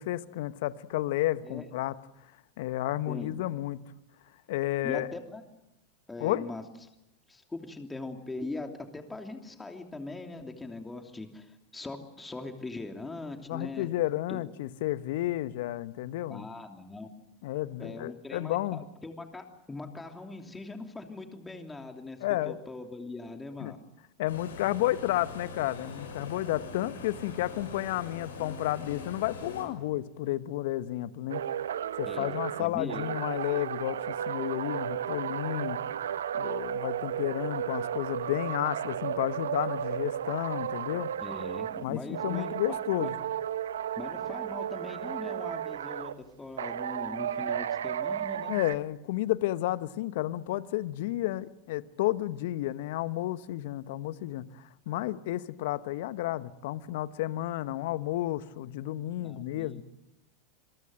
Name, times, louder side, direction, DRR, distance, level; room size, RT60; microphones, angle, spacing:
voice 1, 0.0-1.9 2.6-3.8 4.5-5.1 6.2-6.5 13.5-16.5 17.4-18.8 22.2-22.6 23.6-23.7 24.2-31.4 32.0-35.8 36.3-41.1 41.8-43.1 48.5-54.5 54.9-59.8, left 15 dB, 65° left, 15 dB, 1.1 m, -31 dB
voice 2, 3.1-3.4 4.8-5.4 6.1-6.9 7.3-13.9 14.3-14.4 16.3-17.1 17.8-22.2 22.4-23.8 32.1-33.0 41.2-43.1 44.0-48.5 59.2-59.8, left 3 dB, 10° left, 4 dB, 3.0 m, -41 dB
sound 1, 24.3-29.6, left 3 dB, 80° left, 6.3 m, -43 dB
sound 2, 31.3-41.9 42.1-46.1 46.6-48.7, right 9 dB, 75° right, 0.9 m, -34 dB
28.5 x 22.0 x 7.8 m, 0.91 s
hypercardioid pair, 90°, 0 cm